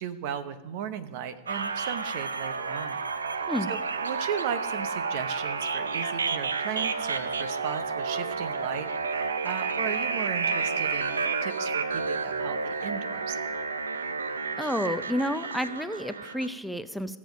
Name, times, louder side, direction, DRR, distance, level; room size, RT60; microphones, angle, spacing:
voice 1, 0.0-3.0 3.3-3.4 3.7-13.4, right 8 dB, 60° right, 10 dB, 0.9 m, -36 dB
sound 1, 1.5-16.5, right 4 dB, 90° right, 0.6 m, -31 dB
voice 2, 14.6-17.2, equal, ahead, 10 dB, 0.5 m, -30 dB
15.5 x 7.4 x 5.3 m, 1.1 s
hypercardioid pair, 100°, 0 cm